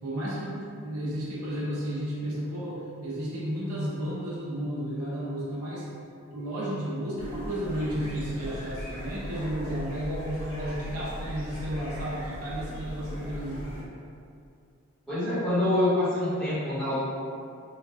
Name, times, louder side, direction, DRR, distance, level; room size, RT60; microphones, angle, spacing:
voice 1, 0.0-5.9 6.3-13.8, equal, 85° right, -7 dB, 0.7 m, -33 dB
sound 1, 7.2-13.8, equal, 65° left, 1.0 m, -38 dB
voice 2, 15.1-17.0, left 1 dB, ahead, -16 dB, 1.3 m, -26 dB
3.2 x 2.5 x 2.3 m, 2.5 s
head